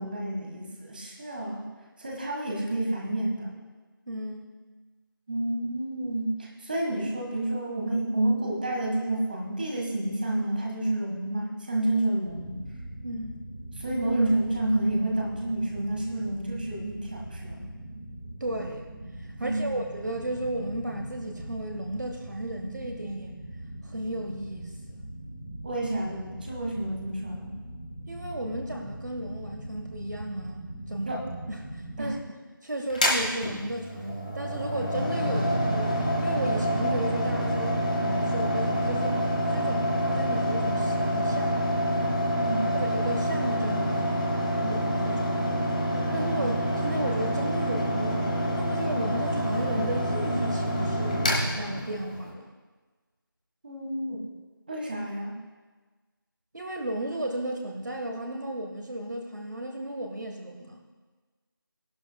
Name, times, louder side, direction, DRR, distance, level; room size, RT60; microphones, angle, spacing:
voice 1, 0.0-1.7 2.0-3.5 5.3-12.6 13.8-17.6 19.4-19.8 25.6-27.5 31.1-31.2 32.0-32.1 42.3-42.7 46.4-46.5 53.6-54.2 54.7-55.4, right 1 dB, 25° right, -1 dB, 1.5 m, -29 dB
voice 2, 4.1-4.5 13.0-13.4 18.4-18.8 19.2-23.4 23.8-25.0 28.1-32.2 32.6-41.6 42.7-45.7 46.1-52.5 56.5-60.8, right 1 dB, 55° right, 3 dB, 1.2 m, -34 dB
sound 1, 12.2-32.2, right 1 dB, 5° right, 0.6 m, -41 dB
Mechanical fan, 32.9-52.3, equal, 20° left, 1.3 m, -27 dB
16.5 x 11.5 x 2.3 m, 1.3 s
figure-of-eight pair, 170°, 12 cm